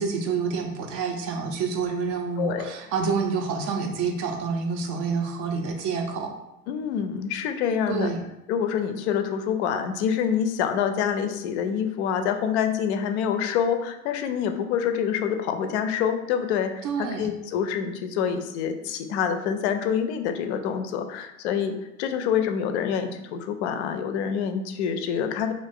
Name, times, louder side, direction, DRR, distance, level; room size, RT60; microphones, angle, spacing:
voice 1, 0.0-6.3 7.9-8.2 16.8-17.3, right 5 dB, 35° right, 3 dB, 0.5 m, -28 dB
voice 2, 2.4-2.7 6.7-8.1 8.5-25.5, left 8 dB, 50° left, 7 dB, 0.5 m, -26 dB
2.6 x 2.4 x 3.6 m, 0.90 s
hypercardioid pair, 90°, 46 cm